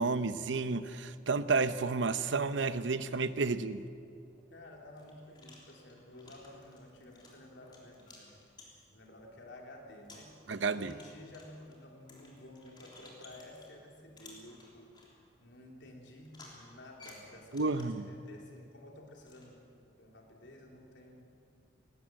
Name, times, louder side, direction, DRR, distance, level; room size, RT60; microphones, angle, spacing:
voice 1, 0.0-3.8 10.5-10.9 17.5-18.1, right 4 dB, 85° right, 13 dB, 0.8 m, -31 dB
sound 1, 4.3-4.4 5.0-9.1 9.6-9.7 10.1-13.8 14.2-15.1 16.3-18.1 19.3-19.5, left 2 dB, 25° left, 3.5 m, -56 dB
voice 2, 4.5-8.3 8.9-10.4 10.7-15.0 15.4-21.2, left 1 dB, 80° left, 0 dB, 3.5 m, -52 dB
19.0 x 18.0 x 7.7 m, 2.5 s
head